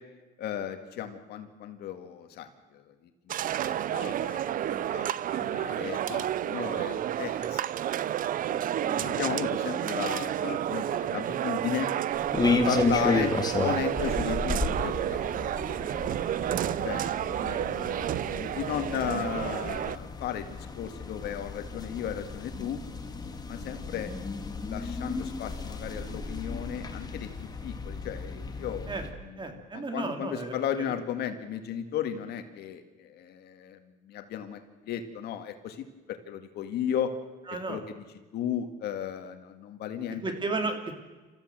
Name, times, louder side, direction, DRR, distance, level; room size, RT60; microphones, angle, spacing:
voice 1, 0.4-2.8 3.3-5.1 5.4-7.6 8.5-8.6 8.8-11.9 12.5-13.3 13.6-15.4 16.8-22.8 23.5-24.1 24.6-27.3 27.6-28.9 29.2-33.8 34.0-37.1 37.7-38.0 38.3-40.2, left 9 dB, 75° left, 7 dB, 2.0 m, -35 dB
sound 1, 3.3-20.0, right 11 dB, 55° right, 0.6 m, -30 dB
sound 2, 12.1-29.1, left 3 dB, 25° left, 2.3 m, -33 dB
voice 2, 29.4-30.8 37.5-37.8 40.2-40.9, right 3 dB, 30° right, 5 dB, 3.1 m, -34 dB
28.0 x 14.5 x 7.6 m, 1.3 s
cardioid pair, 110°, 17 cm